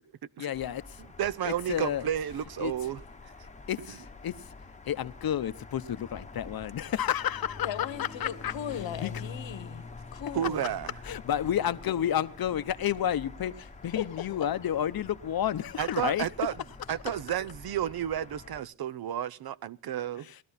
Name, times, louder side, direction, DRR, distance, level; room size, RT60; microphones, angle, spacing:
voice 1, 0.4-0.8 1.4-2.1 2.6-2.7 3.7-4.5 4.9-9.1 11.0-16.3 20.2-20.4, left 10 dB, 55° left, 0.8 m, -31 dB
sound 1, 0.5-18.6, left 4 dB, 15° left, 1.0 m, -46 dB
voice 2, 1.2-3.0 10.3-10.9 15.8-16.5 16.9-20.3, right 10 dB, 55° right, 0.6 m, -31 dB
voice 3, 7.6-10.6 14.0-14.5 16.9-17.2, left 9 dB, 80° left, 1.4 m, -38 dB
19.0 x 13.0 x 4.1 m
cardioid pair, 115°, 44 cm